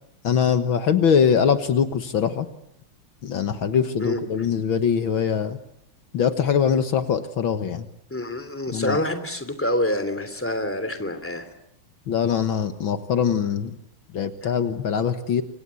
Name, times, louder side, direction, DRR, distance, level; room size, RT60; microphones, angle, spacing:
voice 1, 0.2-2.5 3.2-5.6 6.1-7.9 8.7-9.0 12.1-13.8 14.1-15.4, left 7 dB, 70° left, 9 dB, 2.1 m, -22 dB
voice 2, 8.1-11.5, left 1 dB, 5° left, 10 dB, 2.9 m, -26 dB
28.0 x 25.0 x 8.3 m, 0.78 s
omnidirectional pair, 2.3 m